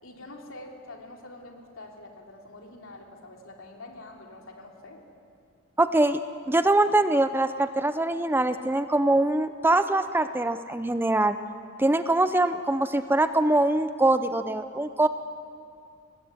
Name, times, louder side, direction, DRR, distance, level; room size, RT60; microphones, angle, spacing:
voice 1, 0.0-5.0, left 2 dB, 65° left, 1 dB, 3.2 m, -45 dB
voice 2, 5.8-6.2 6.5-11.4 11.8-15.1, right 2 dB, 10° right, 11 dB, 0.5 m, -23 dB
24.0 x 19.0 x 9.6 m, 2.5 s
head